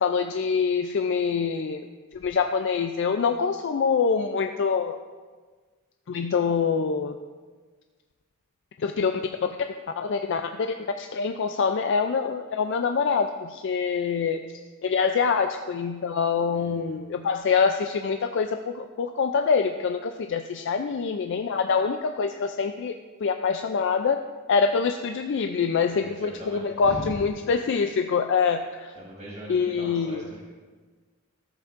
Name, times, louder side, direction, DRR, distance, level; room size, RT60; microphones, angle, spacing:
voice 1, 0.0-1.9 2.1-5.0 6.1-7.2 8.8-9.1 9.4-9.5 10.0-14.4 14.8-23.0 23.2-24.2 24.5-28.9 29.5-30.2, left 5 dB, 55° left, 6 dB, 0.3 m, -25 dB
voice 2, 16.5-16.9 25.9-27.1 29.0-30.4, right 1 dB, 30° right, -7 dB, 1.4 m, -40 dB
14.0 x 7.8 x 2.5 m, 1.4 s
head